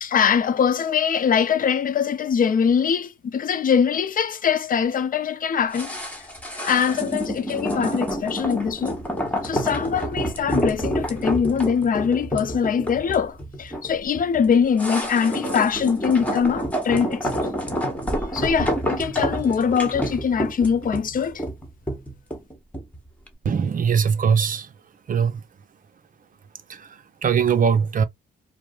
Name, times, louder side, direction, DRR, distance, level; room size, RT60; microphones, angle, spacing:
voice 1, 0.0-5.9 6.6-9.0 9.4-17.3 18.3-21.4, left 7 dB, 45° left, 0.5 m, -22 dB
sound 1, 5.7-23.0 23.3-23.4, equal, 5° left, 1.3 m, -28 dB
voice 2, 23.4-24.7 25.1-25.4 26.7-28.0, right 6 dB, 45° right, 0.6 m, -21 dB
4.6 x 2.0 x 2.4 m
cardioid pair, 90°, 20 cm